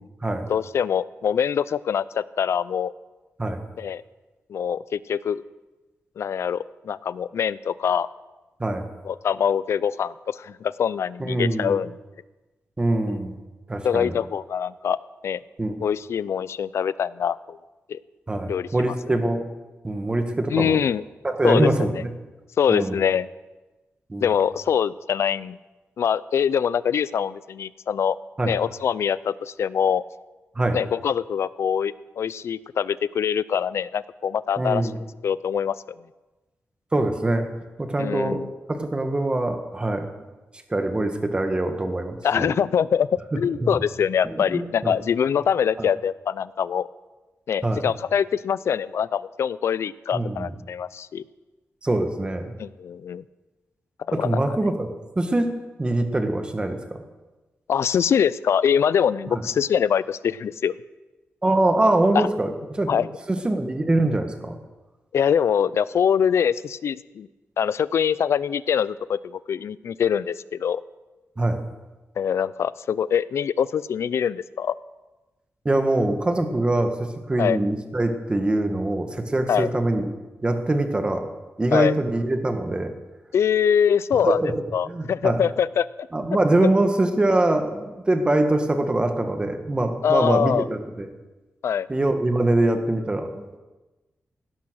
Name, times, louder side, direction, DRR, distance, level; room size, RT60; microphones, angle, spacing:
voice 1, 0.5-2.9 3.8-4.0 4.5-5.4 6.2-8.1 9.0-12.0 13.1-13.2 13.8-15.0 15.2-15.4 15.8-17.6 17.9-18.0 18.5-18.9 20.5-21.0 21.4-22.0 22.6-23.3 24.2-25.6 26.0-28.2 28.4-30.0 30.7-34.9 35.2-35.8 38.0-38.5 42.2-43.1 43.3-46.9 47.5-51.2 52.6-53.2 54.2-54.4 57.7-60.7 62.1-62.3 62.9-63.1 65.1-67.3 67.6-70.8 72.2-74.8 77.4-77.6 79.5-79.7 81.7-81.9 83.3-84.4 84.7-85.9 90.0-90.7 91.6-91.9, left 8 dB, 80° left, 18 dB, 0.5 m, -24 dB
voice 2, 11.2-11.8 12.8-13.3 13.7-14.2 15.6-15.8 18.3-19.4 19.8-20.8 21.2-22.1 22.7-23.0 24.1-24.3 28.4-28.5 30.5-30.8 34.6-34.9 36.9-37.5 37.8-40.1 40.7-42.5 44.2-44.9 45.8-45.9 47.6-47.8 50.1-50.5 51.8-52.5 54.1-54.9 55.1-55.5 55.8-57.0 59.3-59.4 61.4-64.6 71.4-71.6 75.6-80.1 80.4-81.3 81.6-82.9 84.2-84.5 84.9-85.4 86.1-91.1 91.9-93.6, right 2 dB, 20° right, 6 dB, 1.7 m, -23 dB
17.0 x 11.5 x 6.4 m, 1.1 s
wide cardioid pair, 130°, 5 cm